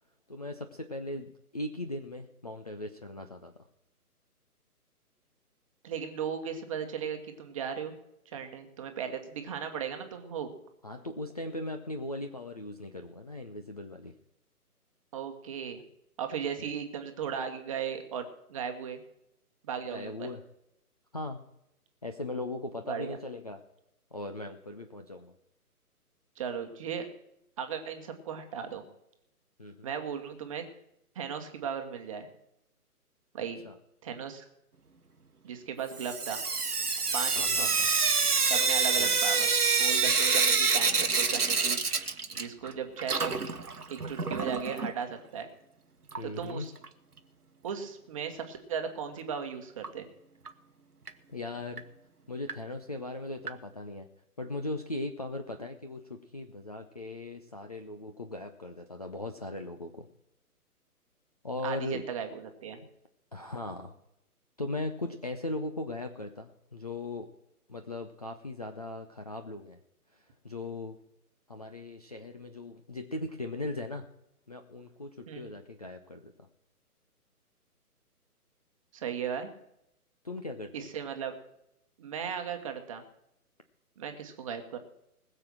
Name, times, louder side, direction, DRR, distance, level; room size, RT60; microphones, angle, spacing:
voice 1, 0.3-3.5 10.8-14.1 16.6-16.7 19.9-20.4 21.1-21.4 22.0-23.6 24.1-25.3 29.6-29.9 33.6-33.8 37.4-37.9 39.0-39.2 40.1-40.2 46.2-46.7 51.3-51.9 52.3-54.1 54.4-60.1 61.4-62.0 63.3-63.9 64.6-67.3 67.7-69.8 70.4-71.0 71.5-74.1 74.5-76.3 80.2-80.9, left 2 dB, 25° left, 5 dB, 0.6 m, -38 dB
voice 2, 5.8-7.9 8.3-10.5 15.1-15.8 16.2-19.0 19.6-20.3 22.9-23.2 26.4-27.1 27.6-28.8 29.8-30.6 31.1-32.3 33.3-33.6 34.0-34.4 35.4-36.4 37.1-37.7 38.5-41.8 42.3-43.3 43.9-45.5 46.2-46.7 47.6-50.1 61.6-62.8 75.3-75.5 78.9-79.5 80.7-81.3 82.0-83.0 84.0-84.8, right 7 dB, 20° right, 5 dB, 1.2 m, -36 dB
Sink (filling or washing) / Drip, 36.0-42.7 43.0-44.9 46.1-46.2 46.5-46.6 46.8-46.9 49.8-49.9 50.5-50.6 51.1-51.2 51.8-51.9 52.5-52.6 53.5-53.6, right 4 dB, 75° right, 1.2 m, -27 dB
20.0 x 6.9 x 6.1 m, 0.82 s
figure-of-eight pair, 140°, 46 cm